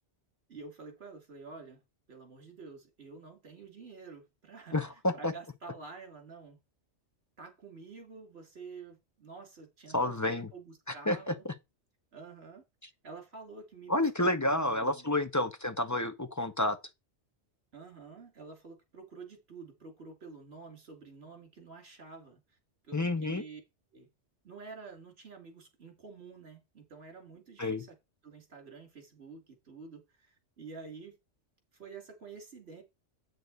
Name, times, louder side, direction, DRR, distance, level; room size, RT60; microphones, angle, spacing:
voice 1, 0.5-1.8 2.1-6.6 7.4-11.4 12.1-12.6 13.0-15.1 17.7-22.6 22.8-23.6 23.9-24.1 24.4-27.9 28.2-31.2 31.7-32.8, right 4 dB, 60° right, 2.7 m, -49 dB
voice 2, 4.7-5.3 9.9-10.5 11.1-11.3 13.9-16.8 22.9-23.4 27.6-27.8, left 1 dB, 20° left, 0.6 m, -29 dB
8.4 x 6.4 x 4.0 m
omnidirectional pair, 1.2 m